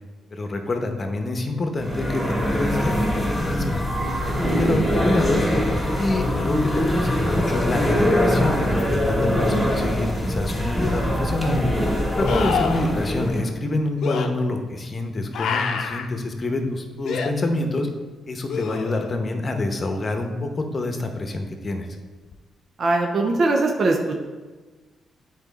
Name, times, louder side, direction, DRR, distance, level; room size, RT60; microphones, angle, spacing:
voice 1, 0.3-3.8 4.2-5.4 5.9-11.6 12.1-17.9 18.3-21.9, left 2 dB, 35° left, 4 dB, 1.0 m, -26 dB
sound 1, 1.8-13.4, equal, ahead, 2.4 m, -23 dB
sound 2, 10.6-10.7 12.2-12.9 14.0-14.3 15.3-16.1 17.0-17.3 18.5-19.2 22.3-22.4, left 6 dB, 75° left, 0.6 m, -27 dB
voice 2, 22.8-24.2, right 2 dB, 55° right, 2 dB, 0.7 m, -21 dB
8.8 x 4.2 x 4.2 m, 1.3 s
cardioid pair, 75°, 0 cm